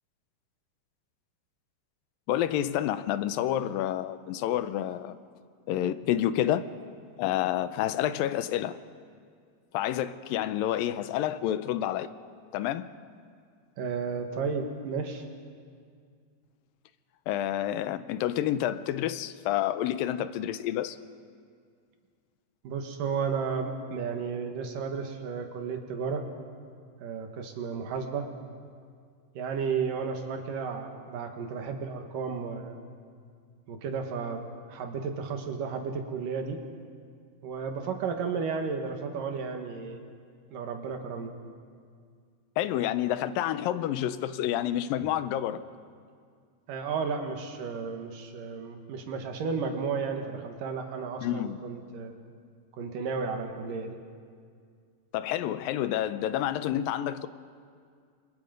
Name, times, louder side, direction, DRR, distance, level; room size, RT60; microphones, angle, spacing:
voice 1, 2.3-5.2 5.7-6.7 7.2-8.8 9.7-12.1 12.5-12.9 17.3-21.0 42.6-45.6 51.2-51.6 55.1-57.3, left 12 dB, 85° left, 2.5 m, -29 dB
voice 2, 13.8-15.2 22.6-26.3 27.0-28.3 29.3-32.8 33.7-36.6 37.4-40.0 40.5-41.4 46.7-52.2 52.7-54.0, right 5 dB, 75° right, 3.3 m, -33 dB
29.5 x 24.5 x 5.3 m
omnidirectional pair, 4.0 m